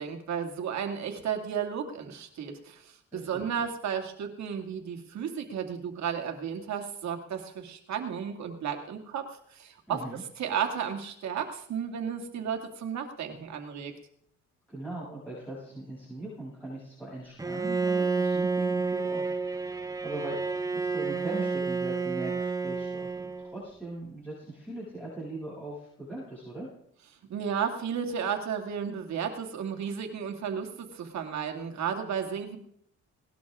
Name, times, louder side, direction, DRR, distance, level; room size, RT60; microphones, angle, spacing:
voice 1, 0.0-9.2 9.5-13.9 27.3-32.6, right 7 dB, 65° right, 4 dB, 2.4 m, -33 dB
voice 2, 9.9-10.2 14.7-20.4 20.7-26.7, right 2 dB, 5° left, -9 dB, 7.7 m, -40 dB
Bowed string instrument, 17.4-23.7, right 4 dB, 10° right, 0.9 m, -30 dB
19.0 x 12.0 x 3.7 m, 0.67 s
cardioid pair, 90°, 30 cm